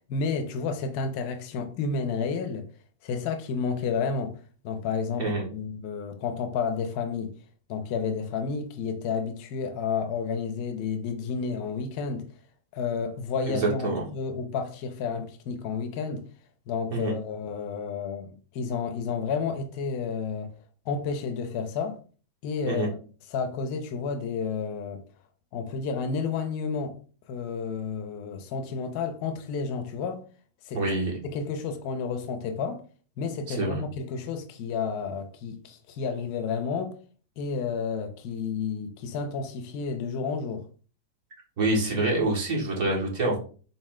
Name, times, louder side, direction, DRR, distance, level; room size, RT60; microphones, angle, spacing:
voice 1, 0.1-2.7 3.0-4.4 4.6-7.3 7.7-12.3 12.7-16.2 16.7-20.5 20.9-22.0 22.4-23.0 23.3-25.0 25.5-27.0 27.3-30.2 30.7-30.8 31.2-32.8 33.2-36.9 37.4-40.6, left 5 dB, 50° left, 0.6 m, -31 dB
voice 2, 13.5-14.0 16.9-17.1 22.7-22.9 30.7-31.2 33.5-33.8 41.6-43.4, right 2 dB, 50° right, 1.8 m, -26 dB
3.9 x 2.1 x 3.6 m
hypercardioid pair, 115°, 0 cm